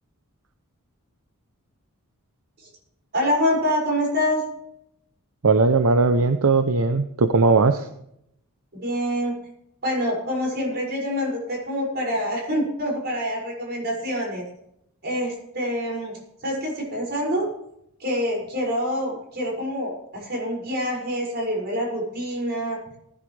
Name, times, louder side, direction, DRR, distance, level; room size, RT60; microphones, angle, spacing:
voice 1, 3.1-4.4 8.7-9.4 9.8-14.4 15.0-17.5 18.0-22.8, equal, 50° right, -1 dB, 6.4 m, -26 dB
voice 2, 5.4-7.9, right 3 dB, 75° right, 8 dB, 0.7 m, -18 dB
19.5 x 11.0 x 3.4 m, 0.77 s
head